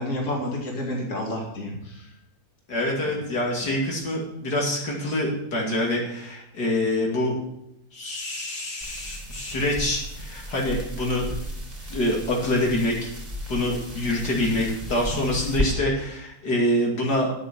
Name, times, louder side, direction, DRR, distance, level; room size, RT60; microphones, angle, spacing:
voice 1, 0.0-2.2 3.1-3.2, left 1 dB, 50° left, -1 dB, 2.9 m, -30 dB
voice 2, 2.7-7.3 7.9-11.3 11.9-13.1 13.5-17.3, left 1 dB, 75° left, -2 dB, 3.0 m, -26 dB
sound 1, 8.8-15.7, equal, 25° right, 3.7 m, -34 dB
10.5 x 8.4 x 7.0 m, 0.80 s
omnidirectional pair, 1.7 m